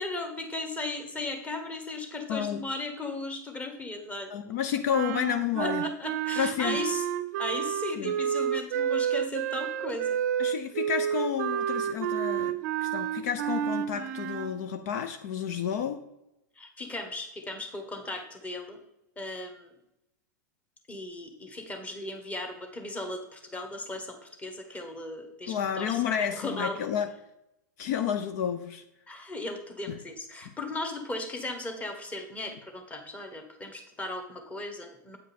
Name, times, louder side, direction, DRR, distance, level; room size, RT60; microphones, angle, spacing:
voice 1, 0.0-4.4 5.6-7.0 7.4-10.1 16.6-18.8 19.2-19.7 20.9-26.8 29.1-35.2, left 2 dB, 15° left, 5 dB, 1.3 m, -37 dB
voice 2, 2.3-2.6 4.3-5.8 6.4-6.8 8.0-8.1 10.4-12.5 12.8-16.0 25.5-27.1 27.8-28.8 29.9-30.0, left 8 dB, 60° left, 8 dB, 0.6 m, -30 dB
sound 1, 4.9-14.6, right 9 dB, 60° right, 0.6 m, -30 dB
8.3 x 5.0 x 4.2 m, 0.86 s
hypercardioid pair, 125°, 10 cm